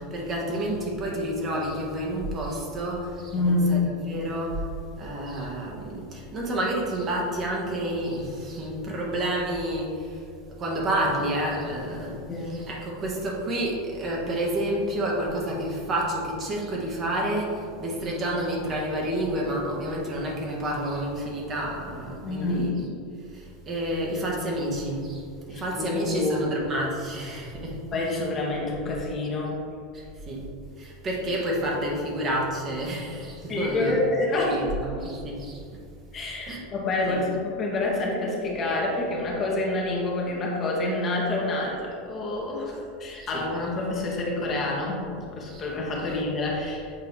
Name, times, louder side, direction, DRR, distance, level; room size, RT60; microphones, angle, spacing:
voice 1, 0.1-4.6 5.0-10.2 10.6-22.8 23.3-27.8 29.9-30.5 30.8-34.0 34.3-35.6 36.5-36.6 37.1-37.2 43.2-43.4 45.5-45.6 46.0-46.1, right 1 dB, 35° right, -2 dB, 1.5 m, -29 dB
voice 2, 3.3-3.9 12.3-12.6 22.2-22.7 25.5-26.5 27.9-29.6 33.5-34.7 36.1-46.9, left 2 dB, 35° left, -2 dB, 1.4 m, -27 dB
7.7 x 4.6 x 3.2 m, 2.4 s
figure-of-eight pair, 80°, 0 cm